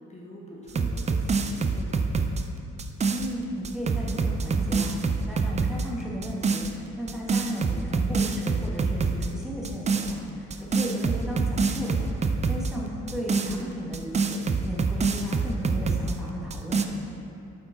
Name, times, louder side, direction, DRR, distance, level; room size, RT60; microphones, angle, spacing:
voice 1, 0.0-2.1 10.5-10.8 14.9-15.3, left 1 dB, 20° left, -4 dB, 1.2 m, -44 dB
sound 1, 0.7-3.3 3.6-5.9 6.2-6.7 7.1-9.3 9.6-10.1 10.5-12.7 13.1-16.1 16.5-16.8, right 4 dB, 25° right, 0.4 m, -26 dB
voice 2, 3.1-12.1 12.5-17.0, right 1 dB, ahead, -5 dB, 1.2 m, -35 dB
7.8 x 4.8 x 3.8 m, 2.6 s
cardioid pair, 90°, 30 cm